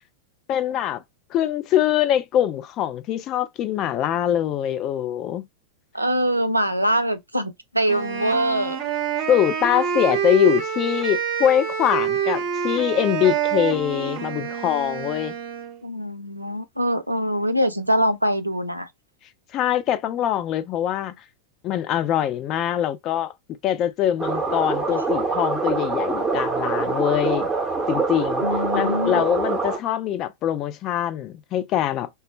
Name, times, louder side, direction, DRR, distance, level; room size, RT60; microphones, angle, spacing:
voice 1, 0.5-1.0 1.3-5.4 9.3-15.3 19.5-21.1 21.6-23.3 23.6-27.5 27.9-28.4 28.7-32.1, left 11 dB, 35° left, 0.3 m, -23 dB
voice 2, 5.9-8.8 15.8-18.9 28.4-29.2, equal, 85° right, 0.4 m, -23 dB
Wind instrument woodwind instrument, 7.9-15.8, right 8 dB, 40° right, 0.6 m, -27 dB
sound 1, 24.2-29.8, right 3 dB, 5° right, 0.9 m, -24 dB
2.2 x 2.1 x 2.9 m
figure-of-eight pair, 90°, 0 cm